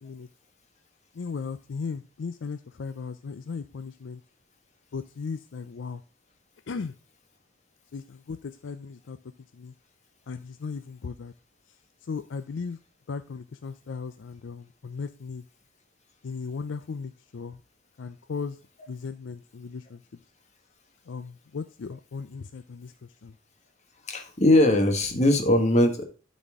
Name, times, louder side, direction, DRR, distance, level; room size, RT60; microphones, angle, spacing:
voice 1, 1.1-4.2 4.9-6.0 6.7-7.0 7.9-9.2 9.5-9.7 10.3-11.3 11.7-12.8 13.1-15.5 16.2-17.6 18.0-18.6 18.9-20.0 21.1-23.4, left 5 dB, 70° left, 11 dB, 0.4 m, -37 dB
voice 2, 24.1-26.0, left 1 dB, 35° left, 5 dB, 1.5 m, -20 dB
12.5 x 4.2 x 3.6 m, 0.35 s
head